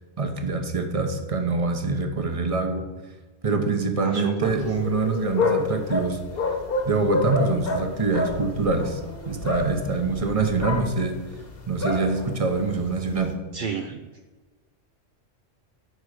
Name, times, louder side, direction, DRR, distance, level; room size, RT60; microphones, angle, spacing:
voice 1, 0.2-2.8 3.4-6.2 6.9-9.0 9.3-11.1 11.7-13.3, right 3 dB, 30° right, 5 dB, 1.0 m, -25 dB
voice 2, 4.0-4.5 13.5-14.1, right 6 dB, 55° right, 6 dB, 0.6 m, -31 dB
sound 1, 4.5-13.3, left 2 dB, 50° left, 1.5 m, -29 dB
11.5 x 4.8 x 6.6 m, 1.3 s
omnidirectional pair, 1.3 m